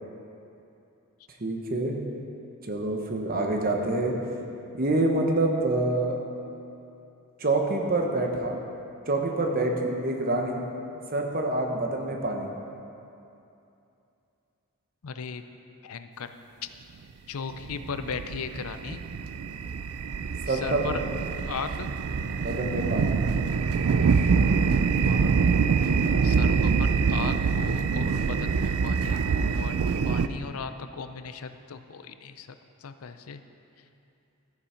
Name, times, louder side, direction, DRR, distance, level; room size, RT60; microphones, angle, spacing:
voice 1, 1.4-2.0 2.6-4.2 4.7-6.2 7.4-8.6 9.1-10.6 11.1-12.5 20.5-21.0 22.4-23.2, right 2 dB, 40° right, 2 dB, 1.1 m, -26 dB
voice 2, 15.0-15.4 15.8-16.3 17.3-19.0 20.5-21.0 21.5-21.9 25.0-25.3 26.2-29.8 30.0-32.6 32.8-33.4, left 5 dB, 75° left, 10 dB, 0.5 m, -37 dB
sound 1, 17.5-30.3, right 5 dB, 75° right, 0.4 m, -25 dB
13.5 x 7.1 x 5.1 m, 2.7 s
head